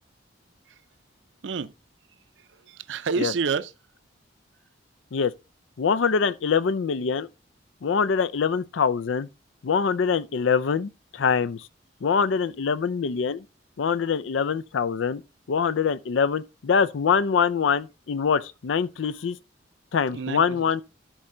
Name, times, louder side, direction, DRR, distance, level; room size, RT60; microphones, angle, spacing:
voice 1, 2.4-3.7 20.1-20.7, right 5 dB, 75° right, 0.5 m, -29 dB
voice 2, 5.8-7.3 7.8-9.3 9.6-11.7 12.0-13.4 13.8-15.2 15.5-19.4 19.9-20.8, left 6 dB, 85° left, 0.4 m, -24 dB
12.5 x 4.4 x 3.8 m
head